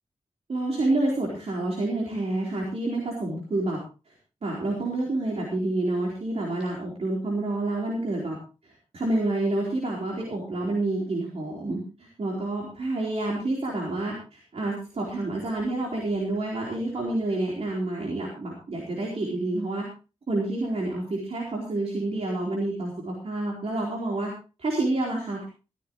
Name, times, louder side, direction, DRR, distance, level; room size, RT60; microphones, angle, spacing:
voice 1, 0.5-3.8 4.4-8.4 8.6-19.9 20.3-24.3 24.6-25.4, right 2 dB, 60° right, -3 dB, 4.2 m, -28 dB
15.5 x 15.0 x 3.2 m, 0.32 s
wide cardioid pair, 145°, 12 cm